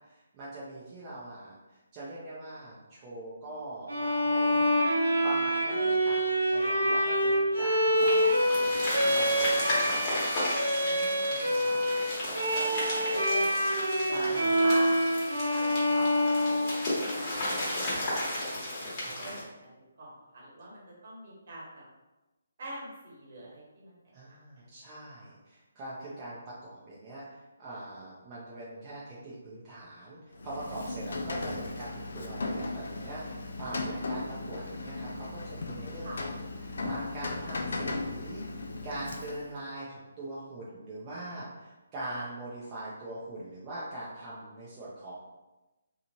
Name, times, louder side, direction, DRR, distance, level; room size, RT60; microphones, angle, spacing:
voice 1, 0.1-1.6 1.9-4.7 5.2-10.1 11.3-11.7 14.0-14.6 19.0-19.1 24.1-36.3 36.6-38.4 38.8-45.1, right 2 dB, 25° right, -8 dB, 0.6 m, -42 dB
Bowed string instrument, 3.9-17.3, equal, 85° right, 1.0 m, -26 dB
sound 1, 8.0-19.4, left 1 dB, 30° left, 1.2 m, -34 dB
voice 2, 10.8-11.8 12.5-13.7 14.0-15.0 15.3-16.9 17.2-18.2 18.8-19.7 20.0-21.8 22.6-23.9 24.6-24.7 36.0-36.2, right 1 dB, 55° right, -5 dB, 1.4 m, -44 dB
Rain, 30.3-39.6, left 2 dB, 65° left, 0.4 m, -37 dB
2.9 x 2.4 x 2.8 m, 1.1 s
figure-of-eight pair, 150°, 0 cm